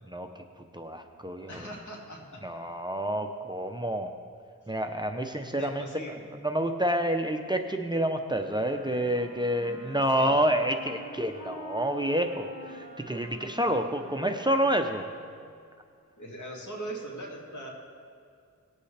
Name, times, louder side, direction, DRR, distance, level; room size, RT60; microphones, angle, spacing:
voice 1, 0.1-0.4 0.7-1.6 2.4-4.1 4.7-5.9 6.4-15.0, right 1 dB, 15° right, 5 dB, 0.6 m, -28 dB
voice 2, 1.5-2.4 4.6-4.7 5.6-6.2 9.8-10.4 16.2-17.7, right 1 dB, 70° left, -2 dB, 2.4 m, -40 dB
Wind instrument woodwind instrument, 8.2-15.6, left 1 dB, 85° left, 3.1 m, -47 dB
19.0 x 8.2 x 3.4 m, 2.3 s
wide cardioid pair, 80°, 31 cm